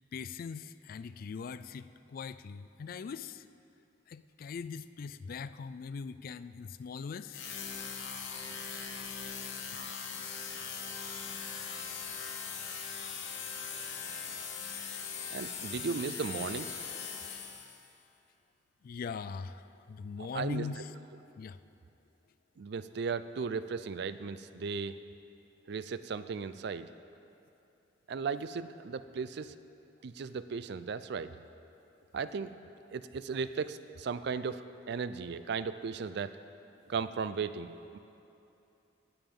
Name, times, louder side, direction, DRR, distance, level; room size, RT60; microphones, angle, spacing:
voice 1, 0.1-3.5 4.1-7.4 9.8-9.9 10.8-11.0 18.8-20.9 21.4-21.6, left 5 dB, 50° left, 14 dB, 0.3 m, -41 dB
sound 1, 7.3-17.9, left 6 dB, 85° left, 1.1 m, -40 dB
voice 2, 15.3-16.8 20.2-20.7 22.6-25.0 25.7-26.9 28.1-29.5 30.0-31.4 32.1-32.5 32.9-36.4 36.9-38.0, right 5 dB, 60° right, 13 dB, 0.4 m, -36 dB
20.0 x 7.0 x 3.7 m, 2.8 s
head